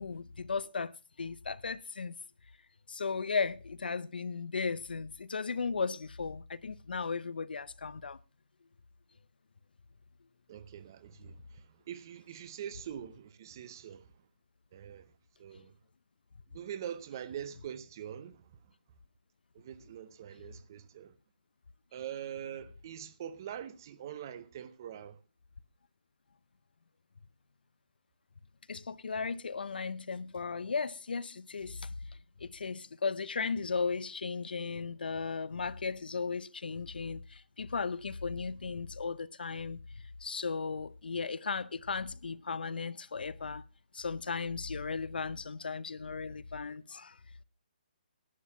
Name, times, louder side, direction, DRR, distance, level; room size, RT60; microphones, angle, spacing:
voice 1, 0.0-2.2 2.9-8.2 28.7-31.9 32.4-39.8 40.2-43.6 43.9-47.2, left 5 dB, 85° left, 0.8 m, -36 dB
voice 2, 10.5-14.1 14.7-15.1 15.4-15.7 16.5-18.7 19.5-21.2 21.9-25.2, right 9 dB, 25° right, 0.6 m, -44 dB
11.5 x 9.3 x 5.9 m
hypercardioid pair, 175°, 5 cm